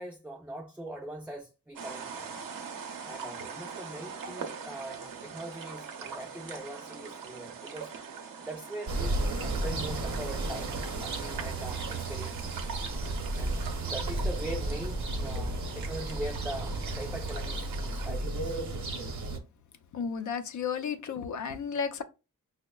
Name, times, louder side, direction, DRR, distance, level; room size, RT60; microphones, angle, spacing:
voice 1, 0.0-2.3 3.0-7.9 8.4-9.1 9.4-12.5 13.4-18.5, right 1 dB, 5° right, 0.4 m, -41 dB
sound 1, 1.8-18.1, right 6 dB, 90° right, 0.7 m, -43 dB
sound 2, 8.9-19.4, right 2 dB, 60° right, 0.8 m, -33 dB
voice 2, 19.9-22.0, left 6 dB, 65° left, 0.5 m, -33 dB
6.1 x 2.1 x 2.2 m
wide cardioid pair, 105°, 32 cm